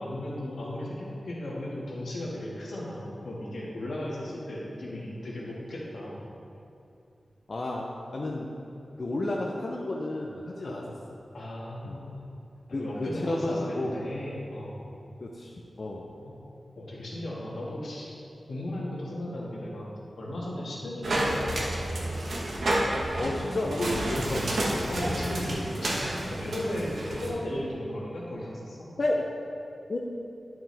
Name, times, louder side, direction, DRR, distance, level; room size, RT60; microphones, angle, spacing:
voice 1, 0.0-6.2 10.6-11.0 11.3-12.2 12.7-14.9 16.2-16.4 16.7-18.1 18.5-19.9 20.2-22.1 24.2-24.4 24.9-28.9, left 1 dB, 80° left, -5 dB, 1.8 m, -36 dB
voice 2, 7.5-8.5 9.0-10.8 11.8-12.0 12.7-13.9 15.2-16.1 23.2-24.8 29.0-29.3 29.9-30.0, left 2 dB, 45° left, -1 dB, 0.6 m, -31 dB
sound 1, 21.0-27.3, right 1 dB, 75° right, 1.3 m, -30 dB
11.0 x 6.0 x 3.4 m, 2.6 s
wide cardioid pair, 120°, 0 cm